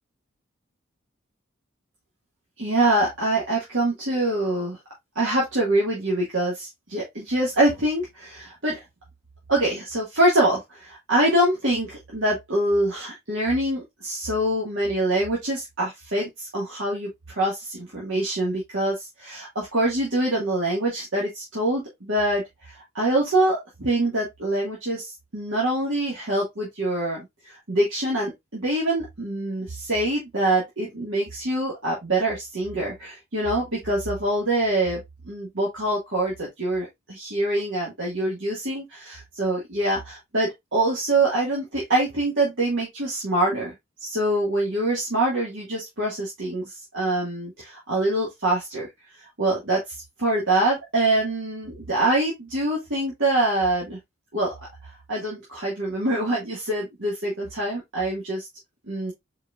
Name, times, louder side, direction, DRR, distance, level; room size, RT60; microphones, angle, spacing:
voice 1, 2.6-4.8 5.1-8.8 9.5-43.7 44.0-48.9 49.2-49.8 50.2-54.0 54.3-54.5 55.1-58.5 58.9-59.1, right 1 dB, 60° right, 1.7 m, -25 dB
4.7 x 4.2 x 2.3 m
head